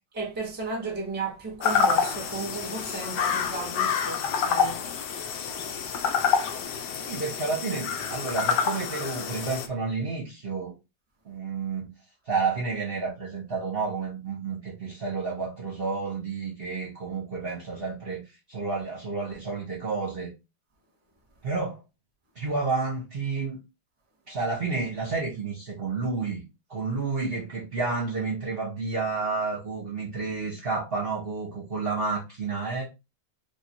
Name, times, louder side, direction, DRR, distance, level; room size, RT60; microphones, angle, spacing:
voice 1, 0.1-4.8, right 3 dB, 5° right, 1.1 m, -34 dB
sound 1, 1.6-9.7, left 6 dB, 80° left, 1.2 m, -27 dB
voice 2, 6.9-10.7 11.2-11.9 12.3-18.2 18.5-20.3 21.4-21.8 22.3-23.6 24.3-26.4 26.7-32.8, right 4 dB, 40° right, 1.1 m, -30 dB
3.0 x 2.7 x 4.3 m
omnidirectional pair, 1.8 m